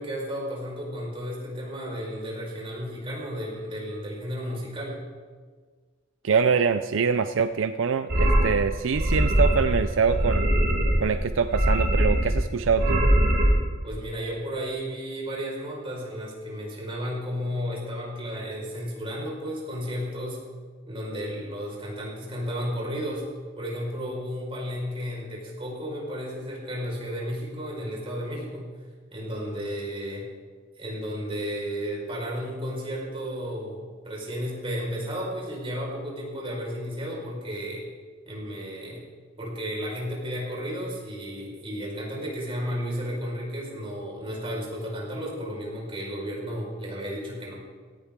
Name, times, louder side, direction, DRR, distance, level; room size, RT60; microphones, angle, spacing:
voice 1, 0.0-5.0 13.8-20.4 20.8-23.3 23.6-28.7 29.1-30.3 30.8-37.8 38.3-39.0 39.4-47.6, equal, 30° right, -3 dB, 5.0 m, -33 dB
voice 2, 6.2-10.5 11.0-13.0, right 6 dB, 75° right, 10 dB, 0.5 m, -24 dB
sound 1, 8.1-8.5 8.9-9.8 10.0-11.0 11.4-12.4 12.6-13.5, right 1 dB, 55° right, 3.9 m, -22 dB
17.0 x 16.0 x 3.7 m, 1.5 s
head